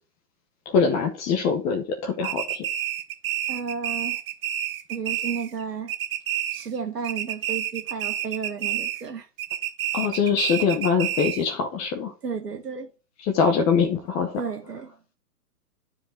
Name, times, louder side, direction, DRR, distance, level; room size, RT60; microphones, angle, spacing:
voice 1, 0.7-2.6 9.9-12.1 13.2-14.4, left 5 dB, 15° left, 0.7 m, -23 dB
sound 1, 2.2-5.6 5.9-6.8 7.0-9.1 9.4-11.5, right 12 dB, 35° right, 0.8 m, -29 dB
voice 2, 3.5-4.2 4.9-5.9 6.5-9.3 12.2-12.9 14.4-14.9, right 6 dB, 85° right, 1.7 m, -32 dB
10.0 x 4.9 x 4.5 m
hypercardioid pair, 135°, 47 cm